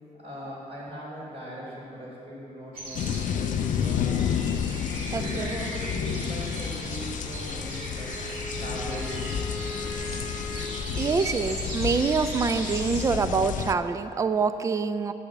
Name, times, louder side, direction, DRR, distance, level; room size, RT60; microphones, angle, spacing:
voice 1, 0.1-4.3 5.1-8.2 8.6-9.4, equal, 50° right, -10 dB, 2.7 m, -39 dB
sound 1, 2.7-13.0, right 1 dB, 85° right, 2.5 m, -38 dB
sound 2, 2.9-13.7, left 8 dB, 65° left, 0.4 m, -31 dB
voice 2, 5.1-5.5 11.0-15.1, right 5 dB, 20° right, 11 dB, 0.3 m, -26 dB
Wind instrument woodwind instrument, 7.9-11.1, left 1 dB, 5° left, 1.5 m, -39 dB
9.0 x 7.0 x 7.0 m, 2.9 s
cardioid pair, 125°, 14 cm